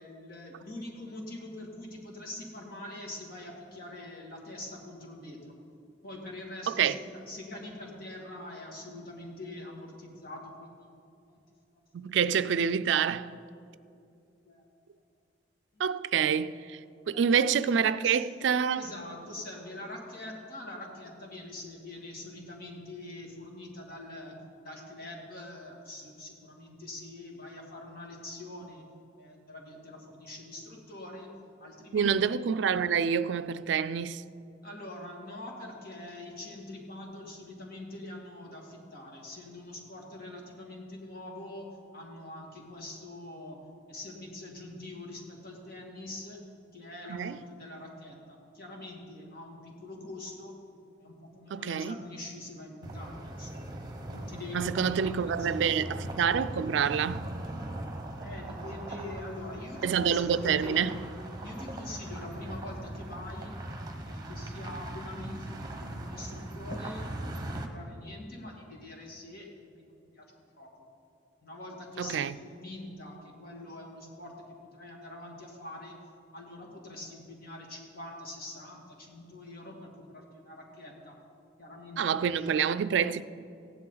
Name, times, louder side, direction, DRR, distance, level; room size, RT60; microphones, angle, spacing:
voice 1, 0.0-5.6 6.0-10.7 11.3-11.4 12.0-12.1 14.4-14.6 15.7-15.8 17.1-17.3 17.7-18.2 18.7-24.4 24.6-28.8 29.2-31.3 31.6-32.2 34.6-43.6 43.9-50.6 51.0-53.8 54.1-55.9 58.2-61.0 61.4-63.6 64.0-69.9 70.1-70.3 70.6-70.7 71.4-76.0 76.3-81.2 81.6-82.7, left 1 dB, 55° left, 2.2 m, -44 dB
voice 2, 6.7-7.0 11.9-13.3 15.8-16.8 17.1-18.9 31.9-34.2 47.1-47.4 51.5-52.0 54.5-57.3 59.8-60.9 72.0-72.3 82.0-83.2, right 7 dB, 70° right, 0.3 m, -27 dB
sound 1, 52.8-67.7, right 1 dB, 20° right, 1.0 m, -40 dB
15.5 x 10.5 x 3.9 m
head